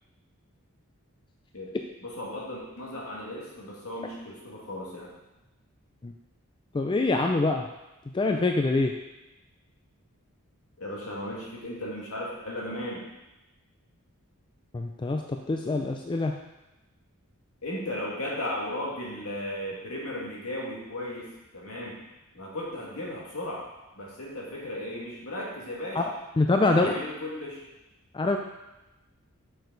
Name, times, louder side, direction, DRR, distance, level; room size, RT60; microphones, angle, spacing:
voice 1, 2.0-5.1 10.8-13.1 17.6-22.0 22.3-23.7 24.0-26.1 26.6-27.6, left 1 dB, 70° left, -4 dB, 2.1 m, -36 dB
voice 2, 6.7-7.6 8.1-8.9 14.7-15.2 15.5-16.3 26.0-26.1 26.4-26.9 28.1-28.4, left 2 dB, 20° left, 3 dB, 0.4 m, -24 dB
6.7 x 6.4 x 3.9 m, 1.0 s
head